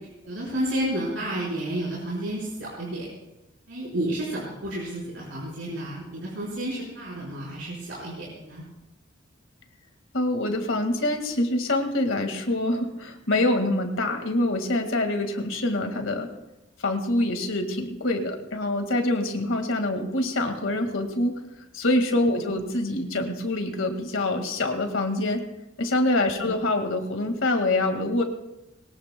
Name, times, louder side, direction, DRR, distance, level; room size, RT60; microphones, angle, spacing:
voice 1, 0.3-3.1 3.7-8.6 22.3-22.6 26.3-26.6, right 1 dB, 80° right, -7 dB, 4.5 m, -31 dB
voice 2, 10.1-16.3 16.8-21.4 21.7-25.4 25.8-28.2, left 1 dB, 90° left, 5 dB, 1.9 m, -25 dB
21.5 x 19.0 x 2.2 m, 0.96 s
head